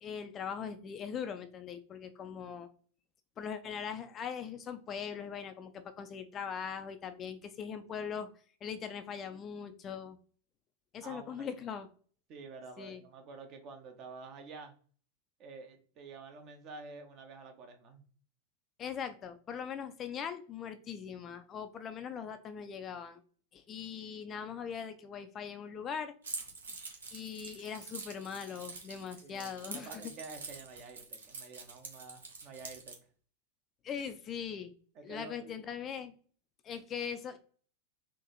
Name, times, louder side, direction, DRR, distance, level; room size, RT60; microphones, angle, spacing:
voice 1, 0.0-2.7 3.4-8.3 8.6-10.2 10.9-11.9 12.8-13.0 18.8-23.2 23.5-26.1 27.1-30.0 33.8-34.7 35.0-36.1 36.6-37.4, left 7 dB, 25° left, 9 dB, 0.4 m, -41 dB
voice 2, 11.0-11.5 12.3-14.7 15.4-18.1 29.2-33.0 34.9-35.5, right 4 dB, 35° right, 6 dB, 0.7 m, -49 dB
Keys jangling, 26.2-33.0, right 4 dB, 70° right, 0.8 m, -45 dB
3.8 x 2.6 x 2.8 m, 0.43 s
figure-of-eight pair, 90°, 0 cm